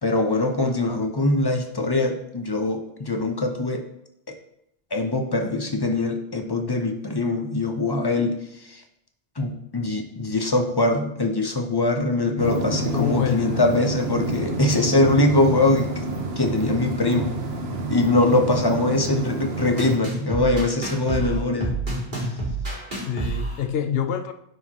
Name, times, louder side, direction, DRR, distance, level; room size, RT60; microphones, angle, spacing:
voice 1, 0.0-3.8 4.9-8.3 8.7-8.8 9.4-15.9 16.4-17.3 17.9-21.8 22.2-22.3, left 2 dB, 25° left, 4 dB, 0.6 m, -22 dB
sound 1, 12.4-20.0, right 2 dB, 70° right, 1.2 m, -28 dB
voice 2, 12.9-13.7 18.3-18.5 23.1-24.3, left 8 dB, 70° left, 9 dB, 0.8 m, -27 dB
sound 2, 19.8-23.6, right 2 dB, 50° right, 2.4 m, -28 dB
9.3 x 4.8 x 2.9 m, 0.80 s
omnidirectional pair, 1.1 m